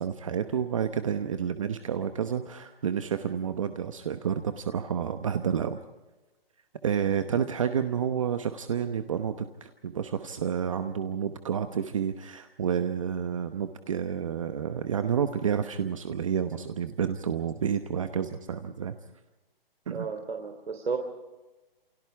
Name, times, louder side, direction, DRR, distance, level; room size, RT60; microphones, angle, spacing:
voice 1, 0.0-5.8 6.8-18.9 19.9-20.1, right 8 dB, 35° right, 8 dB, 1.0 m, -30 dB
voice 2, 19.9-21.0, right 5 dB, 80° right, 4 dB, 3.4 m, -33 dB
28.5 x 27.5 x 3.5 m, 1.1 s
hypercardioid pair, 170°, 29 cm